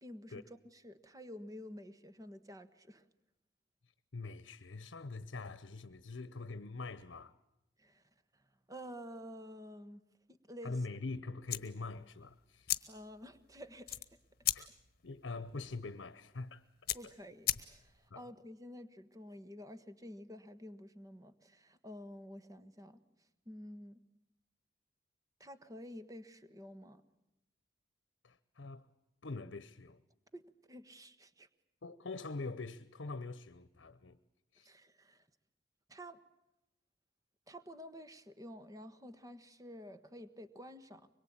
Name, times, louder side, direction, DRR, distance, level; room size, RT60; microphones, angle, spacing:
voice 1, 0.0-3.0 7.8-8.0 8.7-10.0 10.5-10.7 12.9-14.0 16.9-23.0 23.5-24.0 25.4-27.0 30.3-31.5 34.6-35.2 35.9-36.2 37.5-41.1, equal, 20° right, 1.3 m, -50 dB
voice 2, 4.1-7.3 10.6-12.7 14.5-14.7 15.0-16.6 17.0-17.1 18.1-18.3 28.2-28.8 29.2-30.0 31.8-34.2 34.5-34.7, left 3 dB, 85° left, 0.8 m, -44 dB
sound 1, 11.4-18.1, left 13 dB, 55° left, 1.2 m, -40 dB
24.5 x 22.5 x 8.7 m
head